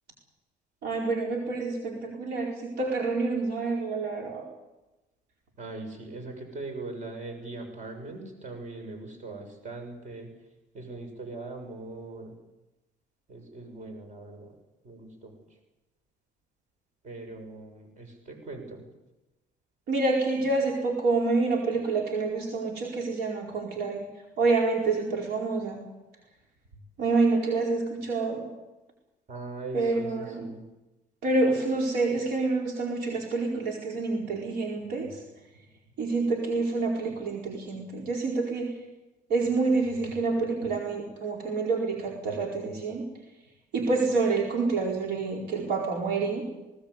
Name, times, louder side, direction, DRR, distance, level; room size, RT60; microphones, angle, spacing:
voice 1, 0.8-4.4 19.9-24.1 24.4-25.8 27.0-28.5 29.7-30.4 31.2-35.2 36.0-38.7 39.3-43.0 43.7-46.4, right 3 dB, 75° right, 0 dB, 4.7 m, -27 dB
voice 2, 5.6-10.3 10.7-12.3 13.3-14.5 14.8-15.4 17.0-18.8 29.3-30.6, right 2 dB, 45° right, 4 dB, 6.8 m, -40 dB
19.5 x 19.0 x 8.3 m, 1.0 s
cardioid pair, 110°, 17 cm